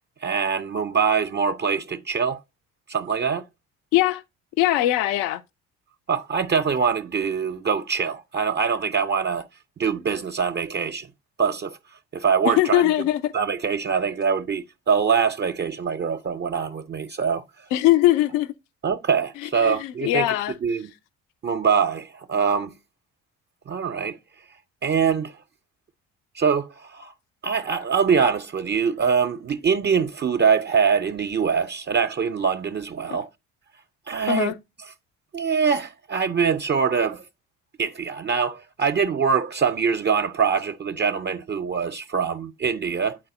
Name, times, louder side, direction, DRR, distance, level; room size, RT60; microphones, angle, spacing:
voice 1, 0.2-2.4 2.9-3.4 6.1-9.5 9.8-11.1 11.4-11.8 12.1-12.8 13.3-17.4 18.8-20.3 20.6-20.9 21.4-22.7 23.7-24.2 24.8-25.4 26.3-27.1 27.4-33.3 34.1-34.5 35.3-37.2 37.8-43.2, right 6 dB, 30° right, 0.5 m, -23 dB
voice 2, 3.9-4.2 4.6-5.4 12.4-13.3 17.7-18.5 19.4-20.5 34.3-34.5, left 14 dB, 70° left, 0.6 m, -21 dB
8.9 x 4.0 x 3.8 m
hypercardioid pair, 50°, 36 cm